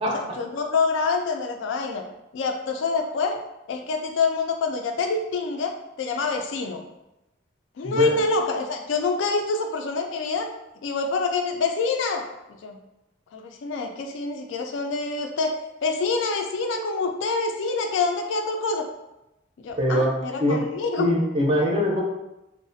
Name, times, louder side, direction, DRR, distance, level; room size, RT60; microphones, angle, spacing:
voice 1, 0.4-2.0 2.3-3.4 3.7-5.7 6.0-6.8 7.8-10.5 10.8-12.2 12.6-12.8 13.3-15.5 15.8-18.9 19.6-21.1, left 4 dB, 85° left, 4 dB, 0.3 m, -26 dB
voice 2, 19.8-20.7 21.0-22.0, equal, 30° right, -2 dB, 0.4 m, -22 dB
2.4 x 2.0 x 2.6 m, 0.93 s
head